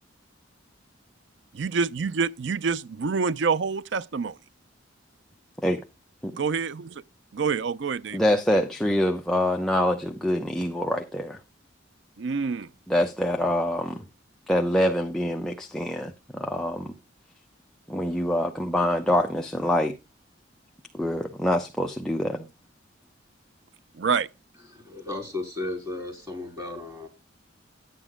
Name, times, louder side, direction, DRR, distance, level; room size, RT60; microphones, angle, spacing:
voice 1, 1.5-4.4 6.4-7.0 7.3-8.2 12.2-12.7 24.0-24.3, right 5 dB, 65° right, 0.5 m, -27 dB
voice 2, 8.1-11.4 12.9-14.0 14.5-16.9 17.9-19.9 20.9-22.5, left 1 dB, ahead, 0.7 m, -25 dB
voice 3, 24.7-27.1, left 2 dB, 20° right, 4.3 m, -34 dB
11.0 x 9.3 x 3.7 m
head